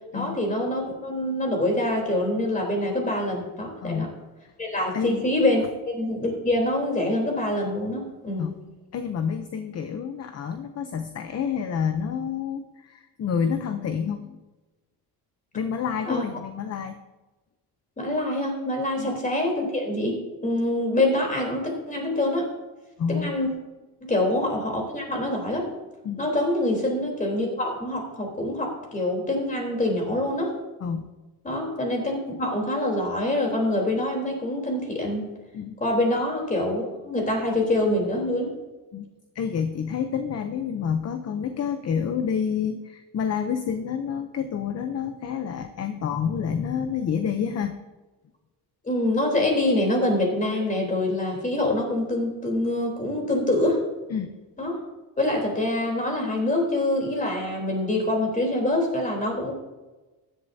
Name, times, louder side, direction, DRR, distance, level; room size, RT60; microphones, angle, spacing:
voice 1, 0.1-4.1 4.6-8.5 16.1-16.2 18.0-22.5 23.1-23.5 24.0-25.7 26.2-30.6 31.4-35.3 35.8-38.5 48.8-53.8 54.6-54.8 55.2-59.5, left 1 dB, 20° left, 1 dB, 3.6 m, -25 dB
voice 2, 3.8-4.1 4.9-5.3 8.4-8.5 8.9-14.4 15.5-17.0 19.0-19.1 23.0-23.3 26.0-26.3 30.8-31.1 35.5-35.8 38.9-39.1 39.3-47.8 54.1-54.3, left 7 dB, 40° left, 8 dB, 0.7 m, -28 dB
15.0 x 11.0 x 2.8 m, 1.1 s
cardioid pair, 135°, 41 cm